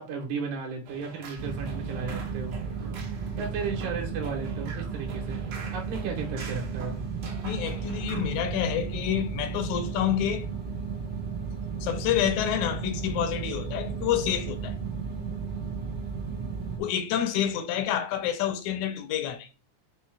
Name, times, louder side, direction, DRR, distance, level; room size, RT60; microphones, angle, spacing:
voice 1, 0.0-2.5 3.4-5.4 5.7-7.0, right 5 dB, 85° right, 2.4 m, -34 dB
sound 1, 0.9-8.5, right 4 dB, 65° right, 1.9 m, -43 dB
sound 2, 1.4-16.8, right 5 dB, 30° right, 0.8 m, -34 dB
voice 2, 7.4-10.5 11.8-14.8 16.8-19.5, left 10 dB, 80° left, 1.9 m, -28 dB
5.4 x 2.1 x 4.5 m
omnidirectional pair, 3.4 m